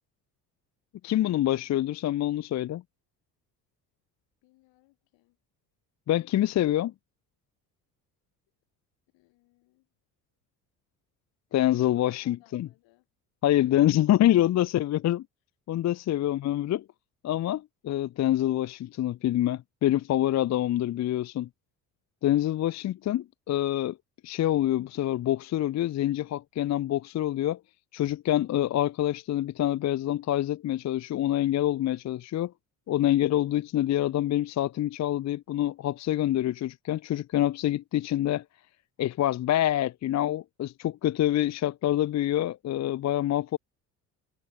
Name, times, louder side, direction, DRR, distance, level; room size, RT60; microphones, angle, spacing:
voice 1, 1.0-2.8 6.1-6.9 11.5-12.7 13.4-15.2 15.7-16.8 17.2-21.5 22.2-24.0 24.2-27.6 27.9-32.5 32.9-38.4 39.0-43.6, left 13 dB, 35° left, 0.6 m, -26 dB
voice 2, 4.4-5.4 9.1-9.9 12.0-13.1 13.7-15.1, left 21 dB, 65° left, 5.9 m, -63 dB
figure-of-eight pair, 55°, 49 cm